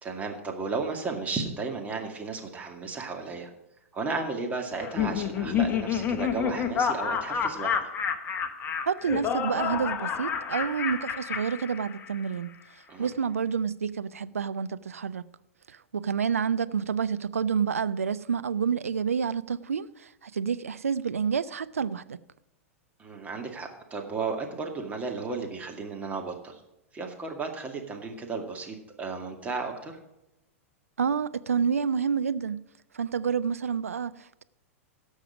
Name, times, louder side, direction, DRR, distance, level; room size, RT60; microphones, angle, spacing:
voice 1, 0.0-3.5 3.9-7.8 12.9-13.1 23.0-26.6 26.9-29.9, right 4 dB, 20° right, 2.2 m, -34 dB
Laughter, 4.7-12.2, left 7 dB, 25° left, 1.2 m, -29 dB
voice 2, 8.8-12.5 13.0-15.3 15.7-22.2 31.0-32.6 32.9-34.4, right 6 dB, 75° right, 0.5 m, -29 dB
17.0 x 6.6 x 4.9 m
figure-of-eight pair, 100°, 8 cm